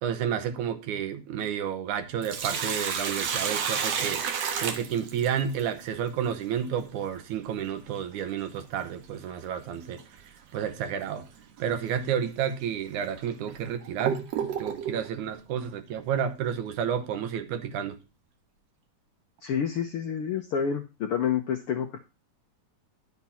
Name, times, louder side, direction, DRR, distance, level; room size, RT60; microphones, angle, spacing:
voice 1, 0.0-4.2 4.6-10.0 10.5-11.3 11.6-18.0, right 8 dB, 75° right, 2.5 m, -31 dB
Sink (filling or washing), 2.0-5.6 8.0-8.1 10.0-10.2 10.7-10.8 11.6-11.7 12.4-12.5 13.2-15.1, right 7 dB, 60° right, 2.2 m, -30 dB
voice 2, 19.4-22.0, left 7 dB, 70° left, 1.3 m, -28 dB
11.0 x 6.0 x 5.5 m
omnidirectional pair, 3.5 m